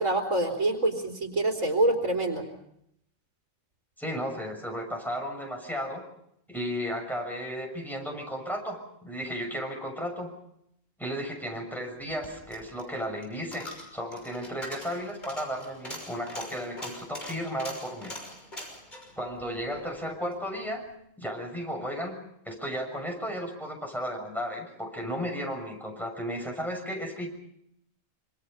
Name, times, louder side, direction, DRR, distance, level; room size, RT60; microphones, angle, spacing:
voice 1, 0.0-2.5, right 2 dB, 85° right, 1 dB, 3.9 m, -26 dB
voice 2, 4.0-6.0 6.5-10.3 11.0-18.1 19.2-20.8 21.2-22.2 22.4-27.3, equal, ahead, 1 dB, 6.5 m, -34 dB
Coin (dropping), 12.0-20.4 20.8-20.9, left 1 dB, 35° left, 6.3 m, -43 dB
26.5 x 26.0 x 5.4 m, 0.74 s
omnidirectional pair, 1.3 m